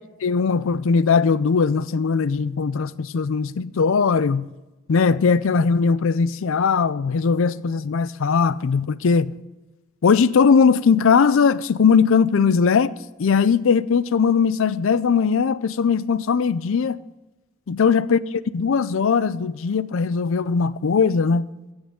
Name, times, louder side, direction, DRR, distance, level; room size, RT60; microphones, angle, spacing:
voice 1, 0.2-4.5 4.9-9.3 10.0-17.0 17.7-18.2 18.5-21.5, left 5 dB, 65° left, 0.4 m, -19 dB
16.0 x 6.3 x 3.6 m
head